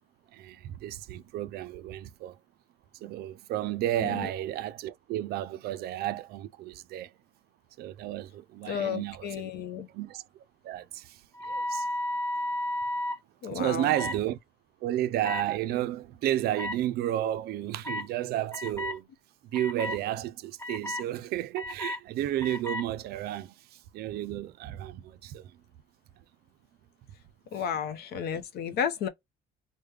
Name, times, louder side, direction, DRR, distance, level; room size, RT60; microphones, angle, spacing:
voice 1, 0.3-2.4 3.0-7.1 7.8-9.5 9.9-10.2 10.6-11.2 11.5-11.9 13.5-14.4 14.8-19.1 19.5-23.5 23.9-25.5, right 13 dB, 70° right, 0.4 m, -32 dB
voice 2, 8.7-9.9 13.4-13.9 27.5-29.1, left 7 dB, 70° left, 0.6 m, -32 dB
sound 1, 11.4-13.2 13.9-14.2 15.2-15.4 16.6-16.7 17.8-18.1 18.5-19.0 19.5-20.0 20.6-21.0 21.6-22.0 22.4-22.8, left 1 dB, 15° left, 0.8 m, -33 dB
3.2 x 2.1 x 3.2 m
cardioid pair, 110°, 17 cm